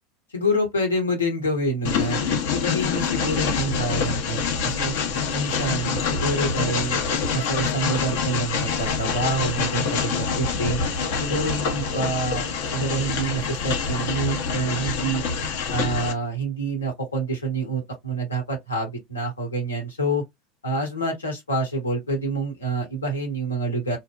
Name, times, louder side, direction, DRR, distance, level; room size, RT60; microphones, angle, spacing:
voice 1, 0.3-2.2 2.5-4.9 5.3-7.0 7.3-10.8 11.2-15.2 15.7-20.2 20.6-24.0, right 2 dB, 90° left, 1.1 m, -27 dB
Train, 1.8-16.1, left 5 dB, 65° left, 0.6 m, -26 dB
2.7 x 2.1 x 2.2 m
hypercardioid pair, 80°, 0 cm